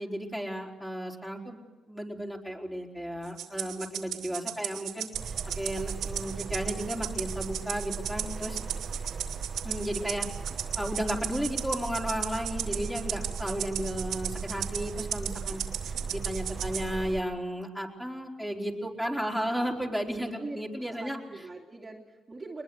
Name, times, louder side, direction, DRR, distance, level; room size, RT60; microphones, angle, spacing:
voice 1, 0.0-1.6 1.9-5.1 5.6-8.6 9.6-10.3 10.8-15.6 16.1-21.2, equal, 5° left, 0 dB, 4.6 m, -33 dB
Rattle (instrument), 3.4-16.9, right 10 dB, 80° right, 2.6 m, -36 dB
sound 1, 5.1-17.2, right 5 dB, 50° right, 1.5 m, -38 dB
voice 2, 20.9-22.6, right 3 dB, 25° right, -1 dB, 2.9 m, -42 dB
23.0 x 21.5 x 8.0 m, 1.2 s
cardioid pair, 90°, 0 cm